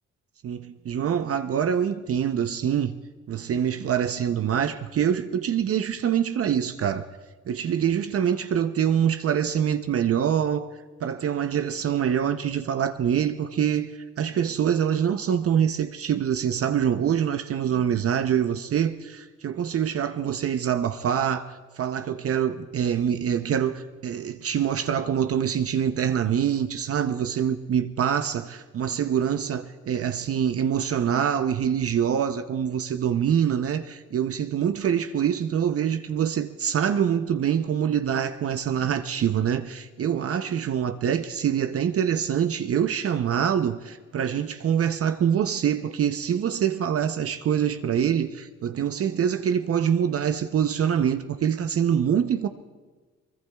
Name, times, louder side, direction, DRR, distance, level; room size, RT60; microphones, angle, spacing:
voice 1, 0.4-3.0 3.3-7.1 7.5-10.7 11.0-52.5, right 8 dB, 50° right, 0.7 m, -25 dB
23.0 x 20.5 x 2.3 m
cardioid pair, 90°, 30 cm